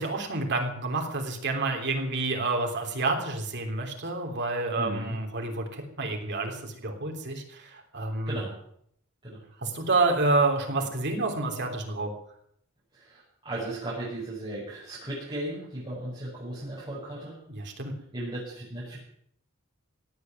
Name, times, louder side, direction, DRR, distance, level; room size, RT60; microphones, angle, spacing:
voice 1, 0.0-8.3 9.6-12.1 17.5-17.9, right 3 dB, 55° right, 3 dB, 3.4 m, -29 dB
voice 2, 4.8-5.2 8.3-8.5 9.2-9.4 12.9-17.4 18.1-19.0, right 1 dB, 25° right, -8 dB, 6.3 m, -36 dB
17.5 x 8.4 x 9.1 m, 0.69 s
head